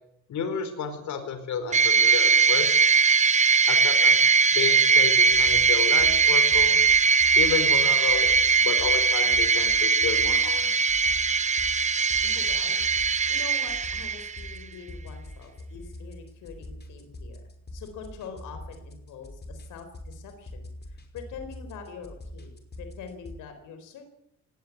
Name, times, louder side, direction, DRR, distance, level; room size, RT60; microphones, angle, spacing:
voice 1, 0.3-2.9 3.7-4.2 4.5-6.8 7.4-8.3 8.6-10.8, left 6 dB, 70° left, 8 dB, 4.6 m, -31 dB
sound 1, 1.7-14.6, right 5 dB, 25° right, 0.9 m, -21 dB
sound 2, 5.0-23.4, left 1 dB, 35° left, 5.5 m, -44 dB
voice 2, 12.2-12.8 13.3-22.5 22.8-24.0, left 6 dB, 90° left, 7 dB, 4.3 m, -44 dB
19.5 x 18.5 x 9.6 m, 0.82 s
cardioid pair, 90°, 30 cm